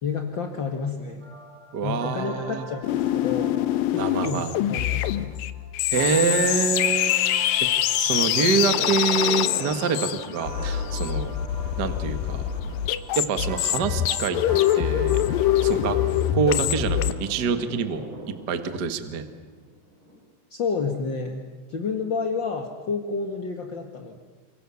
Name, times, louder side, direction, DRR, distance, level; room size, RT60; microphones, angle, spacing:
voice 1, 0.0-1.3 1.8-3.6 3.9-5.4 20.5-21.4 21.7-24.2, left 5 dB, 45° left, 3 dB, 1.5 m, -30 dB
sound 1, 1.2-17.6, right 1 dB, 45° right, 8.5 m, -44 dB
voice 2, 1.7-2.7 3.9-4.5 5.9-7.1 7.6-7.7 8.0-11.3 11.8-12.4 13.1-14.4 14.7-15.2 15.6-16.0 16.3-18.1 18.5-19.2, right 5 dB, 70° right, 8 dB, 0.9 m, -26 dB
sound 2, 2.8-17.1, left 12 dB, 70° left, 2.3 m, -24 dB
Thunder, 8.3-20.1, right 1 dB, 30° right, 8.0 m, -41 dB
29.0 x 26.5 x 7.1 m, 1.4 s
omnidirectional pair, 4.8 m